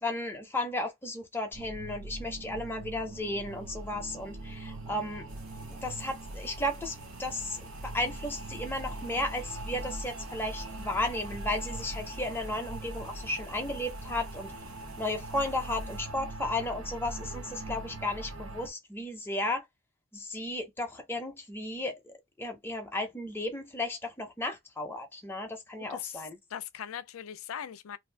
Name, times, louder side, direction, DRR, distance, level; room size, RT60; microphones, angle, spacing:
voice 1, 0.0-5.3 5.7-14.5 15.0-19.6 20.1-26.4, left 1 dB, 10° left, 0.6 m, -34 dB
sound 1, 1.5-18.7, right 2 dB, 80° right, 0.7 m, -41 dB
sound 2, 5.3-16.0, right 1 dB, 45° right, 1.4 m, -53 dB
voice 2, 25.8-28.0, left 9 dB, 90° left, 0.4 m, -40 dB
2.6 x 2.4 x 3.3 m
head